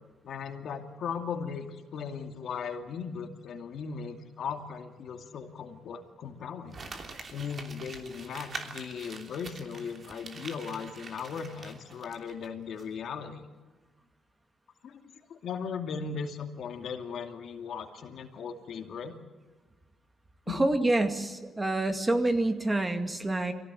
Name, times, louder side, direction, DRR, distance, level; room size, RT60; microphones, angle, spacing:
voice 1, 0.2-6.8 7.3-13.4 14.8-19.1 20.5-20.6, left 6 dB, 65° left, 5 dB, 2.5 m, -38 dB
Crumpling crinkling, 6.7-12.5 12.8-12.9, right 4 dB, 45° right, 3.1 m, -44 dB
voice 2, 20.5-23.5, right 2 dB, 15° right, 7 dB, 2.2 m, -27 dB
23.5 x 17.0 x 9.2 m, 1.3 s
cardioid pair, 90°, 0 cm